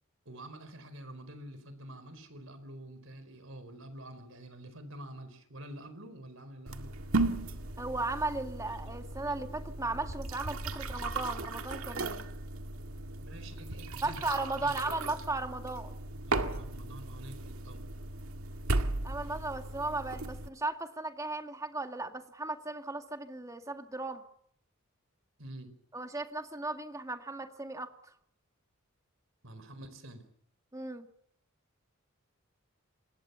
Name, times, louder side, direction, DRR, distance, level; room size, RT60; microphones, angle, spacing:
voice 1, 0.2-6.9 13.2-14.3 14.6-14.7 16.3-17.8 25.4-25.7 29.4-30.2, right 1 dB, 70° right, 10 dB, 4.6 m, -47 dB
sound 1, 6.7-20.5, right 2 dB, 90° right, 1.9 m, -36 dB
voice 2, 7.8-12.3 14.0-16.0 19.0-24.2 25.9-27.9 30.7-31.1, right 2 dB, 15° right, 6 dB, 2.0 m, -36 dB
26.5 x 20.5 x 7.0 m, 0.69 s
head